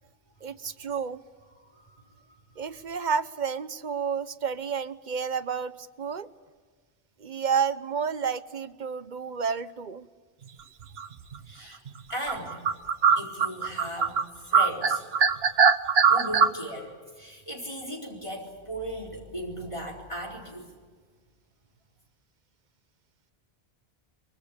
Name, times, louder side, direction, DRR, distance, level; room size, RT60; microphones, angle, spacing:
voice 1, 0.4-1.2 2.6-6.3 7.2-10.1, right 6 dB, 50° right, 14 dB, 1.0 m, -30 dB
sound 1, 11.0-11.4 11.9-12.0 12.3-14.2 14.5-16.5, right 6 dB, 75° right, 1.3 m, -21 dB
voice 2, 11.5-11.8 12.1-12.6 13.2-15.0 16.0-20.7, equal, 30° left, -1 dB, 4.2 m, -37 dB
24.0 x 24.0 x 8.7 m, 1.5 s
omnidirectional pair, 1.0 m